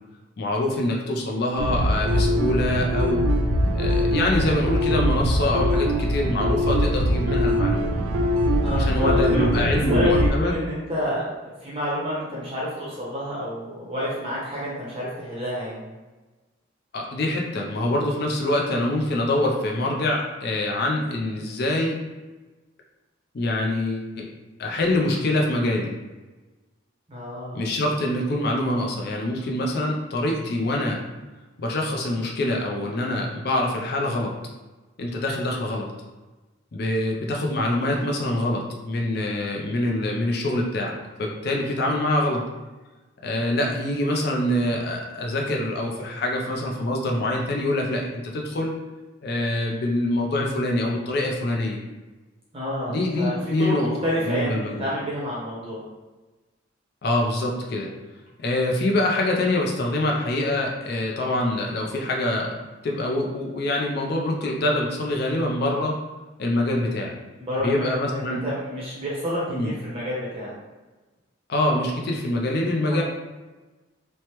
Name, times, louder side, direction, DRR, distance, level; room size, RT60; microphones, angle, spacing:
voice 1, 0.4-3.2 3.7-7.9 8.7-10.6 16.9-22.0 23.3-24.3 24.6-25.9 27.5-31.0 31.6-34.3 35.0-35.9 36.7-42.4 43.2-48.7 49.2-51.8 52.9-53.9 54.2-54.9 57.0-57.9 58.4-62.5 62.8-66.0 66.4-67.2 67.6-68.4 69.5-69.7 71.5-73.0, left 1 dB, 50° left, 0 dB, 0.4 m, -25 dB
sound 1, 1.6-10.3, equal, 90° right, 0.4 m, -22 dB
voice 2, 8.6-15.9 27.1-27.6 52.5-55.8 67.4-70.5 72.9-73.0, equal, 25° right, -7 dB, 0.6 m, -29 dB
3.1 x 2.1 x 2.9 m, 1.2 s
head